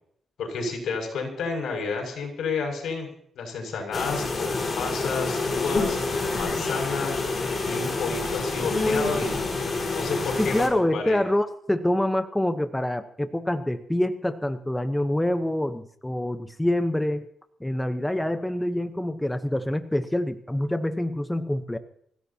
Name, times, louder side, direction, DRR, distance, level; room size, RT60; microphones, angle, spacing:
voice 1, 0.4-3.1 3.3-6.0 6.3-9.4 9.9-11.2, left 4 dB, 80° left, 2 dB, 6.3 m, -31 dB
sound 1, 3.9-10.7, left 3 dB, 35° left, 4.8 m, -27 dB
voice 2, 10.4-17.3 17.6-21.8, left 1 dB, 5° left, 9 dB, 0.9 m, -26 dB
25.5 x 16.0 x 2.9 m, 0.67 s
cardioid pair, 110°, 0 cm